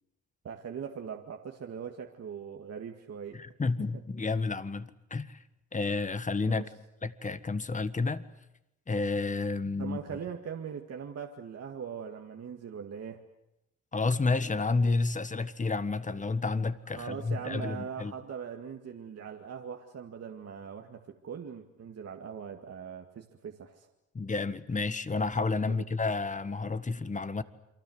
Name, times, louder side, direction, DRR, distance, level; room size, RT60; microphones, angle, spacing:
voice 1, 0.4-3.4 6.4-6.7 9.8-13.2 16.9-23.9 25.7-25.8, right 7 dB, 55° right, 3 dB, 2.1 m, -41 dB
voice 2, 3.3-5.4 5.7-6.7 7.0-8.2 8.9-10.0 13.9-18.1 24.1-27.4, left 3 dB, 25° left, 13 dB, 1.6 m, -30 dB
29.0 x 23.5 x 8.0 m, 0.85 s
cardioid pair, 90°, 30 cm